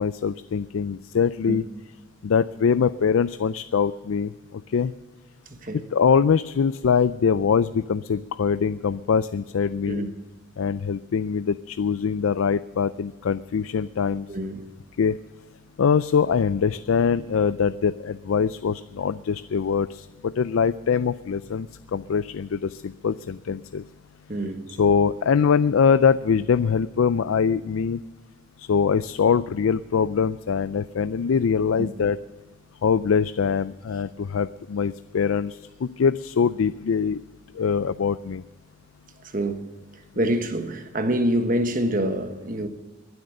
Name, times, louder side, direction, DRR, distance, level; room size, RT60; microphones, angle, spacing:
voice 1, 0.0-1.6 2.2-4.9 5.7-10.0 10.6-14.3 15.0-15.2 15.8-23.8 24.7-28.0 28.6-32.2 32.8-37.2 37.5-38.4 40.2-40.3, left 6 dB, 85° left, 0.4 m, -23 dB
voice 2, 14.3-14.6 24.3-24.6 31.8-31.9 39.3-39.6 40.1-42.7, right 1 dB, 40° right, 1.3 m, -26 dB
22.5 x 7.9 x 6.5 m
head